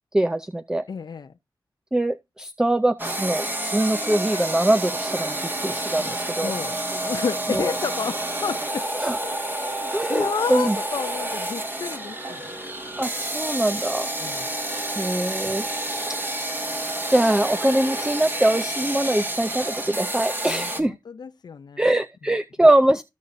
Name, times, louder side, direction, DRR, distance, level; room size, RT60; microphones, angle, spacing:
voice 1, 0.1-0.8 1.9-6.5 7.5-7.7 9.0-9.2 9.9-10.8 13.0-14.1 15.0-16.0 17.1-20.9 21.8-23.0, right 1 dB, 10° right, 0.4 m, -23 dB
voice 2, 0.9-1.3 6.0-8.9 9.2-12.6 14.2-14.5 20.5-21.8, left 6 dB, 55° left, 0.5 m, -31 dB
sound 1, 3.0-20.8, right 1 dB, 25° right, 1.8 m, -29 dB
14.5 x 5.3 x 2.6 m
wide cardioid pair, 95°, 8 cm